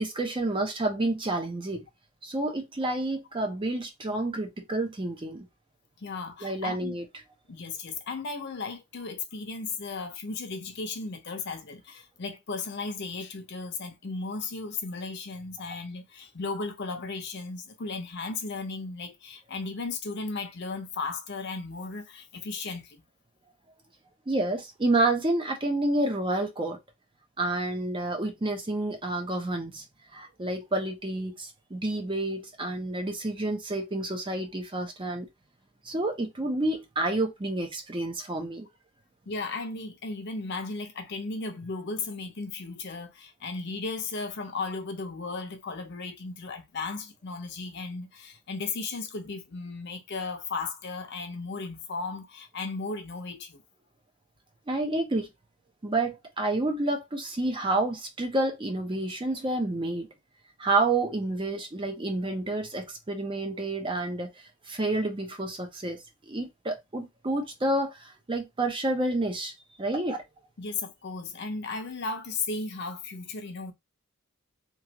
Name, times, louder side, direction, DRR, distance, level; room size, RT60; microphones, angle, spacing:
voice 1, 0.0-1.8 2.2-5.5 6.4-7.0 24.3-26.8 27.4-29.8 30.1-35.3 35.8-38.7 54.7-55.3 55.8-60.1 60.6-69.5 69.8-70.2, right 2 dB, 25° right, 0.6 m, -29 dB
voice 2, 6.0-7.0 7.5-23.0 39.3-53.6 70.6-73.7, left 4 dB, 50° left, 0.7 m, -35 dB
3.0 x 2.4 x 2.8 m
head